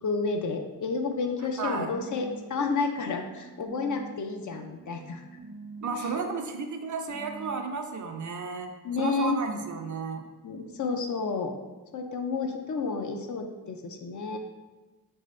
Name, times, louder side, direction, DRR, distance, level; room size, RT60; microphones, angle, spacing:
voice 1, 0.0-5.2 6.0-6.1 8.8-9.4 10.4-11.5 11.9-14.4, left 4 dB, 45° left, 5 dB, 0.4 m, -31 dB
sound 1, 1.1-4.1 4.5-7.5, right 3 dB, 90° right, 0.7 m, -46 dB
voice 2, 1.6-1.9 5.8-8.7 9.0-10.2, right 4 dB, 45° right, 4 dB, 0.5 m, -32 dB
3.4 x 2.7 x 3.1 m, 1.2 s
cardioid pair, 60°, 41 cm